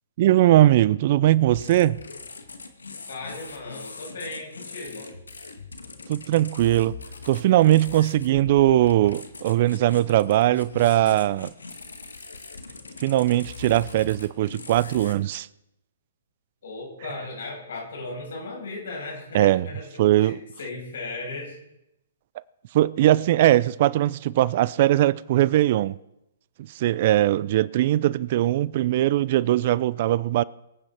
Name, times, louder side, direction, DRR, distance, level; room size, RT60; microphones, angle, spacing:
voice 1, 0.2-2.0 6.1-7.0 7.3-11.5 13.0-15.5 19.3-19.7 20.0-20.4 22.7-26.0 26.7-30.4, right 14 dB, 50° right, 0.4 m, -20 dB
sound 1, 1.4-15.1, left 4 dB, 85° left, 1.8 m, -41 dB
voice 2, 3.1-5.1 16.6-21.6, left 3 dB, 65° left, 7.1 m, -36 dB
23.5 x 8.9 x 4.4 m
hypercardioid pair, 130°, 0 cm